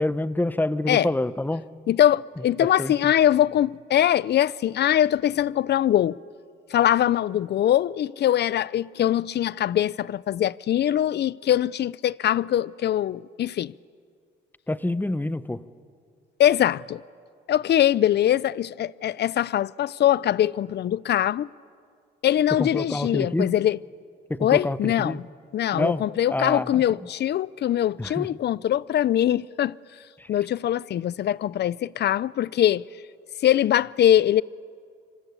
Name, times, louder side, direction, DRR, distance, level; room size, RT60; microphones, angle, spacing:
voice 1, 0.0-1.6 2.6-3.1 14.7-15.6 22.6-23.5 24.3-25.2 25.7-26.0 26.3-26.8 28.0-28.3 30.2-30.3, left 1 dB, 10° left, 1.0 m, -27 dB
voice 2, 1.9-6.2 6.7-13.7 16.4-17.0 17.5-21.5 22.2-23.8 24.4-25.2 25.5-29.7 30.3-32.8 33.4-34.4, left 11 dB, 60° left, 0.6 m, -22 dB
26.0 x 24.5 x 8.4 m
cardioid pair, 90°, 20 cm